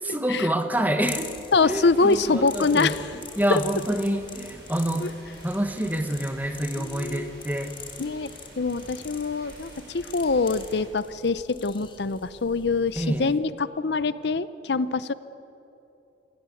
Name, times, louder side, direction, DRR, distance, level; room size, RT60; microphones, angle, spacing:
voice 1, 0.0-3.0 3.4-5.1 5.4-7.8 12.9-13.4, right 1 dB, 10° right, 7 dB, 1.2 m, -27 dB
sound 1, 1.1-13.4, left 6 dB, 25° left, 1.6 m, -44 dB
voice 2, 1.5-3.0 3.5-3.6 5.0-5.1 6.8-7.4 8.0-8.3 8.6-15.1, left 4 dB, 70° left, 16 dB, 0.6 m, -24 dB
sound 2, 1.8-10.9, right 1 dB, 60° right, 6.9 m, -49 dB
26.5 x 17.0 x 8.5 m, 2.9 s
head